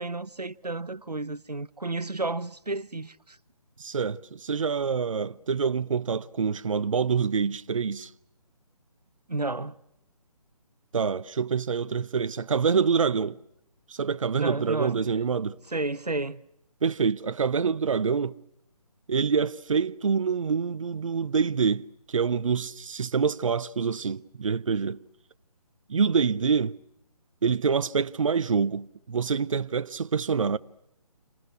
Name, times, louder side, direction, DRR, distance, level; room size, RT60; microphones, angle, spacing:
voice 1, 0.0-3.4 9.3-9.7 14.4-15.0 15.7-16.4, right 2 dB, 90° right, 1.1 m, -31 dB
voice 2, 3.8-8.1 10.9-13.4 13.9-15.6 16.8-18.3 19.1-25.0 25.9-26.8 27.4-30.6, right 6 dB, 55° right, 0.9 m, -26 dB
29.5 x 26.0 x 6.2 m
figure-of-eight pair, 145°, 20 cm